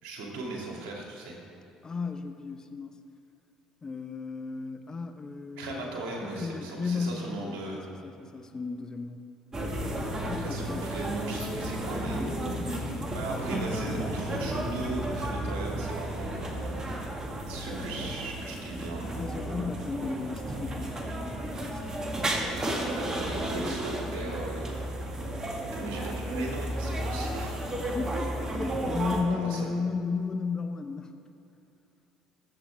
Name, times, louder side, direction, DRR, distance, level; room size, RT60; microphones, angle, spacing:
voice 1, 0.0-1.4 5.6-7.9 10.4-12.3 13.1-16.8 17.5-19.1 23.0-24.9 25.7-27.6 29.3-29.6, right 2 dB, 70° right, -1 dB, 2.6 m, -38 dB
voice 2, 1.8-3.0 3.8-5.8 6.2-9.3 10.2-10.9 19.2-22.2 27.8-31.2, left 4 dB, 30° left, 7 dB, 0.9 m, -34 dB
sound 1, 9.5-29.2, right 1 dB, 25° right, 1.8 m, -33 dB
21.0 x 7.9 x 3.5 m, 2.8 s
hypercardioid pair, 60°, 2 cm